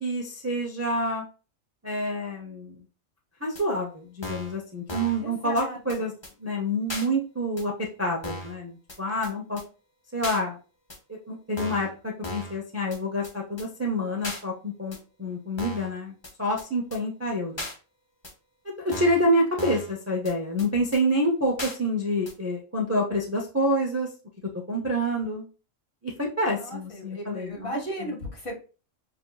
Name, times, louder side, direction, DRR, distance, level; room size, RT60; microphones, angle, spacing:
voice 1, 0.0-1.2 1.8-2.7 3.4-6.1 6.4-7.7 8.0-9.6 10.1-10.6 11.1-16.1 16.4-17.6 18.7-24.1 24.7-25.4 26.0-27.8, equal, 15° right, -1 dB, 0.6 m, -27 dB
sound 1, 3.6-3.7 4.2-4.6 4.9-5.2 5.6-5.7 5.9-6.0 6.2-6.3 6.9-7.1 7.6-7.7 8.2-8.6 8.9-9.0 9.2-9.3 9.6-9.7 10.2-10.4 10.9-11.0 11.6-11.9 12.2-12.6 12.9-13.0 13.2-13.3 13.6-13.7 14.2-14.4 14.9-15.0 15.6-15.9 16.2-16.3 16.6-16.7 16.9-17.0 17.6-17.7 18.2-18.3 18.9-19.2 19.6-19.9 20.3-20.4 20.6-20.7 20.9-21.0 21.6-21.8 22.3-22.4, left 1 dB, 25° left, 0.8 m, -36 dB
voice 2, 5.2-6.1 26.5-28.6, equal, 50° left, 0 dB, 1.8 m, -36 dB
6.9 x 2.8 x 2.3 m, 0.35 s
omnidirectional pair, 1.4 m